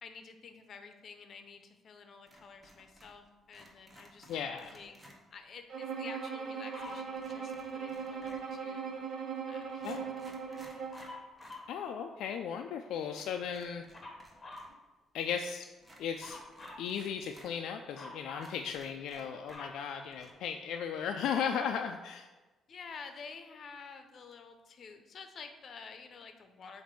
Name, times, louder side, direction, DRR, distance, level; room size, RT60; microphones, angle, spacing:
voice 1, 0.0-8.9 9.5-10.0 10.2-10.7 22.7-26.8, left 5 dB, 55° left, 7 dB, 0.7 m, -50 dB
sound 1, 2.3-3.2 3.5-5.2 6.8-8.6 9.3-9.4 9.7-11.7 12.0-12.1 13.1-14.8 15.0-15.1 15.8-17.5 18.0-18.1 18.4-19.8 20.1-20.3, equal, 15° right, 1.1 m, -58 dB
voice 2, 4.3-4.7 9.8-10.1 11.7-13.8 15.1-15.7 16.0-16.4 16.8-22.3, left 7 dB, 80° left, 4 dB, 0.3 m, -36 dB
Bowed string instrument, 5.7-11.1, right 6 dB, 65° right, 1.0 m, -39 dB
Dog, 6.7-7.1 10.9-11.8 13.9-14.7 16.2-16.9 17.9-18.6 19.1-20.6 21.4-21.5, left 2 dB, 25° left, 1.1 m, -48 dB
7.3 x 2.6 x 5.3 m, 1.2 s
cardioid pair, 90°, 0 cm